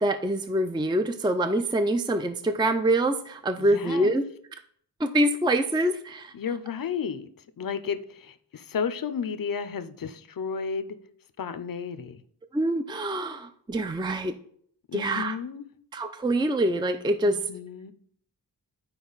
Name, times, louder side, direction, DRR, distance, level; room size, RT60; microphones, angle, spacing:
voice 1, 0.0-4.2 5.0-6.3 12.5-14.3 14.9-15.4 15.9-17.4, right 1 dB, 10° right, 0.5 m, -25 dB
voice 2, 3.6-4.1 6.3-7.3 7.6-11.0 11.4-12.2 14.9-15.7 17.3-17.9, left 6 dB, 50° left, 0.6 m, -33 dB
11.5 x 4.5 x 4.0 m
wide cardioid pair, 70°, 43 cm